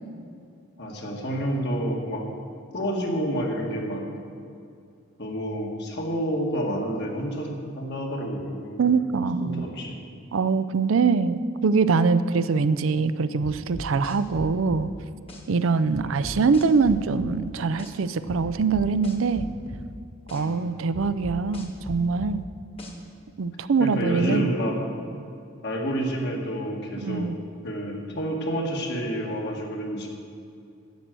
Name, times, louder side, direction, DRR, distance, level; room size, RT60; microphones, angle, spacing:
voice 1, 0.8-2.2 2.7-4.0 5.2-8.8 9.4-10.0 16.0-16.2 20.3-20.6 23.8-24.8 25.6-27.3 27.6-30.1, equal, 55° left, 0 dB, 1.9 m, -29 dB
voice 2, 8.8-9.7 10.3-14.9 15.5-19.5 20.3-22.4 23.4-24.5 27.0-27.4, right 4 dB, 70° right, 13 dB, 0.5 m, -23 dB
sound 1, 13.4-14.8 15.3-15.4 15.9-17.3 17.8-17.9 18.3-19.8 20.3-20.4 20.9-22.3 22.8-22.9, equal, 25° left, 1.5 m, -38 dB
10.5 x 8.2 x 7.6 m, 2.4 s
head